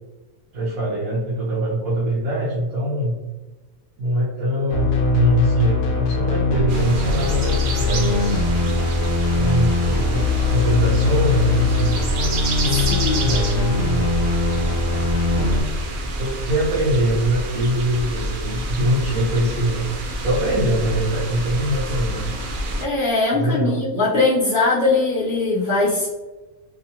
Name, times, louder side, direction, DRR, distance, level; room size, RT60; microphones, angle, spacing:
voice 1, 0.5-3.2 4.0-8.4 9.3-12.3 13.2-14.1 16.2-19.8 20.2-22.3 23.3-23.8, right 1 dB, 85° right, -6 dB, 1.2 m, -23 dB
sound 1, 4.7-15.6, left 3 dB, 80° left, 1.0 m, -21 dB
sound 2, 6.7-22.9, right 1 dB, 60° right, 0.5 m, -28 dB
voice 2, 12.7-13.4 22.8-26.1, left 3 dB, 45° left, -10 dB, 0.9 m, -21 dB
3.0 x 2.7 x 2.7 m, 1.2 s
omnidirectional pair, 1.4 m